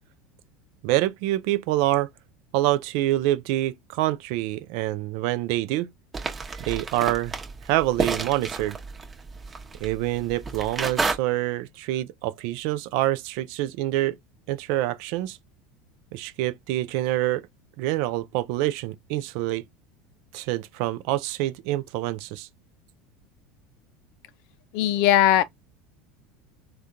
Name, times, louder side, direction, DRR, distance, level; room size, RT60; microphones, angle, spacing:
voice 1, 0.8-2.1 2.5-5.9 6.6-7.3 7.7-8.8 9.8-14.1 14.5-15.4 16.1-17.4 17.8-19.6 20.3-22.5, right 15 dB, 65° right, 0.3 m, -26 dB
sound 1, 6.1-11.2, right 4 dB, 25° right, 0.9 m, -31 dB
voice 2, 24.7-25.4, left 11 dB, 65° left, 0.4 m, -19 dB
3.5 x 2.3 x 2.7 m
hypercardioid pair, 95°, 0 cm